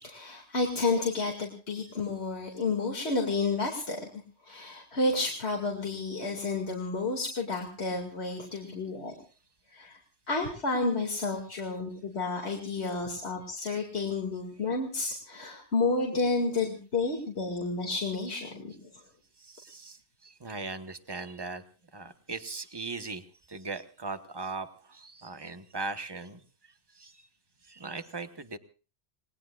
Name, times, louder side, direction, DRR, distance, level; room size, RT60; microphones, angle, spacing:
voice 1, 0.0-9.1 9.7-10.0 10.3-18.9, left 3 dB, 80° left, 0 dB, 2.7 m, -31 dB
voice 2, 19.4-20.0 20.2-21.6 21.9-23.2 23.5-26.4 27.0-27.1 27.7-28.6, right 3 dB, 25° right, 10 dB, 1.2 m, -39 dB
28.5 x 19.5 x 2.4 m, 0.36 s
omnidirectional pair, 1.1 m